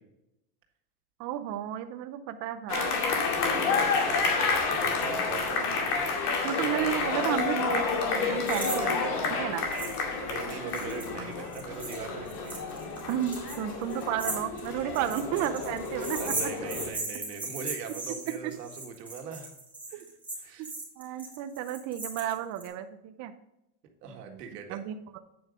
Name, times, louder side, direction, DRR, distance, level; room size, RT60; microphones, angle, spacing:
voice 1, 1.2-3.0 6.4-9.0 9.3-9.7 13.1-16.2 18.3-18.5 19.9-20.0 21.0-23.3 24.1-24.4 24.7-25.2, right 11 dB, 40° right, 8 dB, 0.6 m, -32 dB
sound 1, 2.7-16.9, left 4 dB, 75° left, 2.3 m, -30 dB
voice 2, 4.0-6.2 10.2-12.6 16.2-19.5 19.9-20.1 20.4-20.7 24.0-24.8, right 6 dB, 90° right, 3 dB, 1.8 m, -41 dB
sound 2, 8.5-8.8 9.0-9.1 9.7-10.0 10.3-22.7, right 2 dB, 5° right, 2.5 m, -38 dB
8.7 x 5.3 x 4.9 m, 0.87 s
supercardioid pair, 140°, 46 cm